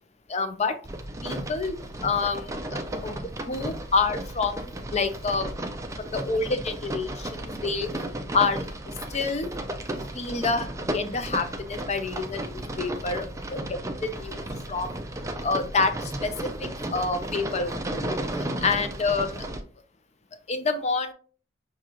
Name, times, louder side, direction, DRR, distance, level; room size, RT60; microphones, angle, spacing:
voice 1, 0.3-0.7 1.2-1.8 2.0-2.5 3.0-3.2 3.5-5.5 6.0-8.0 8.3-8.7 9.1-9.5 10.1-13.6 14.0-15.0 15.4-16.3 16.6-19.6 20.5-21.1, left 4 dB, 35° left, 9 dB, 0.5 m, -28 dB
sound 1, 0.8-19.6, right 1 dB, 15° right, 0.4 m, -34 dB
6.1 x 2.3 x 2.9 m, 0.42 s
head